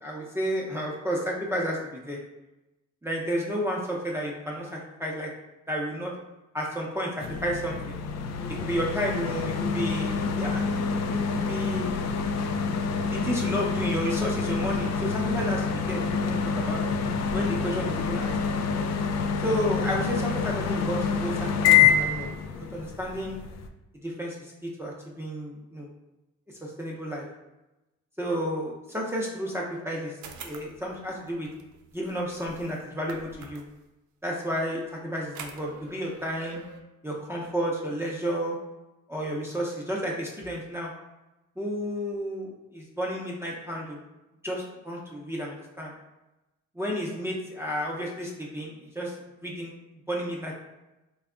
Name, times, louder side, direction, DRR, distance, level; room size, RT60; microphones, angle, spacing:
voice 1, 0.0-2.2 3.0-5.3 5.7-6.1 6.5-8.0 8.6-11.9 13.0-16.8 17.3-18.3 19.4-23.4 24.0-25.9 26.6-27.3 28.2-30.1 30.4-31.5 31.9-33.6 34.2-36.6 37.0-38.6 39.1-40.9 41.6-44.0 44.4-45.9 46.8-49.2 49.4-49.7 50.1-50.5, equal, 10° right, -4 dB, 0.6 m, -31 dB
sound 1, 7.2-23.7, left 6 dB, 60° left, 0.4 m, -27 dB
sound 2, 30.2-33.9 35.2-36.8, right 5 dB, 75° right, 0.6 m, -46 dB
3.3 x 2.3 x 3.7 m, 1.0 s
cardioid pair, 90°, 30 cm